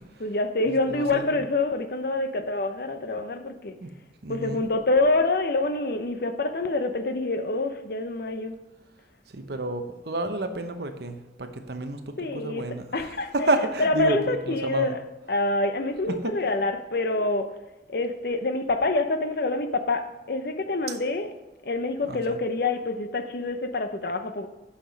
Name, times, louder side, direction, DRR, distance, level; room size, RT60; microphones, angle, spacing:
voice 1, 0.2-3.7 4.3-8.6 12.2-12.6 12.9-13.5 13.8-15.0 15.3-17.5 17.9-21.3 21.6-24.5, left 2 dB, 55° left, 0.6 m, -26 dB
voice 2, 0.9-1.3 3.8-3.9 4.2-4.6 9.3-13.1 13.3-15.0 22.1-22.4, right 2 dB, 60° right, 0.9 m, -30 dB
8.7 x 5.8 x 5.1 m
head